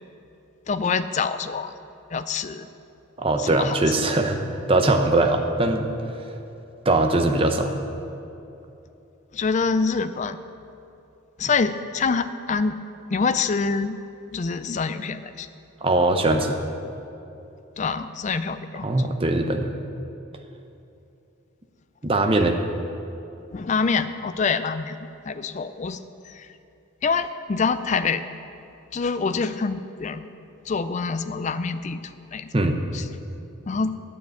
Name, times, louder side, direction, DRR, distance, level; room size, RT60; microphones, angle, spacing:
voice 1, 0.7-1.7 2.1-2.7 3.4-4.1 9.3-10.4 11.4-12.8 13.1-14.0 14.3-15.5 17.8-18.9 23.5-25.0 25.3-26.0 26.3-26.5 27.0-28.2 28.9-30.3 30.7-32.5 32.9-33.0 33.7-33.9, left 5 dB, 35° left, 11 dB, 0.4 m, -26 dB
voice 2, 3.2-4.4 4.7-5.9 6.8-7.8 15.8-16.6 18.8-19.7 22.0-22.6 32.5-32.8, right 2 dB, 25° right, 5 dB, 0.7 m, -21 dB
9.6 x 6.6 x 8.2 m, 2.9 s
head